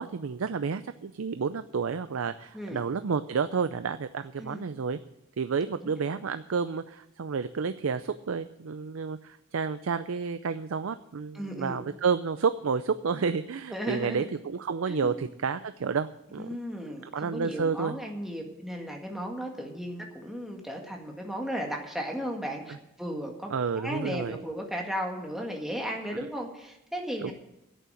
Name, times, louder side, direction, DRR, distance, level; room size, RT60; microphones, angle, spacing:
voice 1, 0.0-5.0 5.4-16.5 17.1-18.0 23.5-24.4 27.2-27.3, right 5 dB, 80° right, 12 dB, 0.5 m, -30 dB
voice 2, 11.3-11.8 13.7-14.3 14.9-15.3 16.4-27.3, equal, ahead, 0 dB, 1.9 m, -35 dB
11.0 x 8.4 x 9.0 m, 0.87 s
head